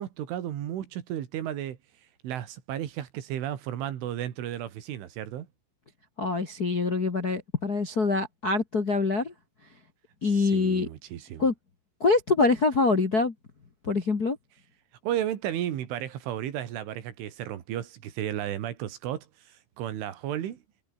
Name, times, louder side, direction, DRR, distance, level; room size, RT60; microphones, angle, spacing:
voice 1, 0.0-1.8 2.2-5.5 10.2-11.5 15.0-20.6, right 11 dB, 90° right, 4.8 m, -33 dB
voice 2, 6.2-9.3 10.2-10.9 11.4-11.5 12.0-13.3 13.9-14.4, left 3 dB, 60° left, 0.9 m, -24 dB
omnidirectional pair, 5.4 m